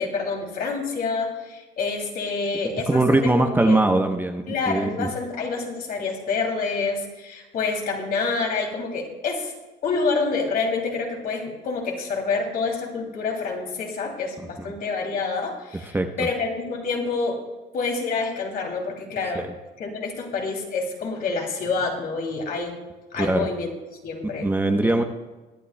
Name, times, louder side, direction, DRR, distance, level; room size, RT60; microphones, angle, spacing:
voice 1, 0.0-3.8 4.5-9.5 9.8-17.4 17.7-19.5 19.8-22.8 23.1-23.7 24.0-24.5 24.8-24.9, left 4 dB, 60° left, 1 dB, 2.8 m, -27 dB
voice 2, 2.9-5.1 15.9-16.1 19.3-19.4 23.2-23.5 24.4-25.0, right 2 dB, 10° right, 4 dB, 0.8 m, -21 dB
22.5 x 10.0 x 2.2 m, 1.2 s
cardioid pair, 110°, 17 cm